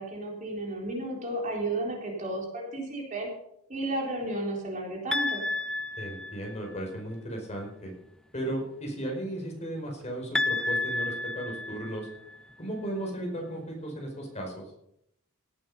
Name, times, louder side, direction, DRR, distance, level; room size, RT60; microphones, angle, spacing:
voice 1, 0.0-3.3 3.7-5.4, right 1 dB, 35° right, -1 dB, 3.9 m, -33 dB
sound 1, 5.1-6.8 10.4-12.4, left 2 dB, 5° left, 0.7 m, -31 dB
voice 2, 6.0-7.9 8.3-12.1 12.6-14.7, right 1 dB, 30° left, 0 dB, 4.9 m, -35 dB
17.5 x 8.8 x 5.6 m, 0.76 s
head